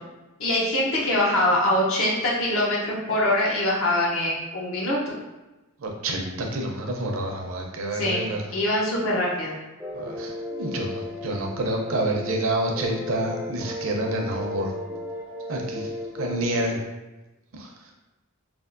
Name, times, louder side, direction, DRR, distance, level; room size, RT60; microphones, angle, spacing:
voice 1, 0.4-5.1 7.9-8.2 8.5-9.5, left 1 dB, 65° left, -4 dB, 0.6 m, -23 dB
voice 2, 5.8-8.4 9.9-14.7 15.5-15.9 16.2-16.8 17.5-17.9, right 1 dB, 65° right, 1 dB, 0.5 m, -28 dB
sound 1, 9.8-12.5 12.7-16.8, left 2 dB, 5° right, 0.4 m, -35 dB
3.4 x 2.4 x 2.5 m, 1.1 s
head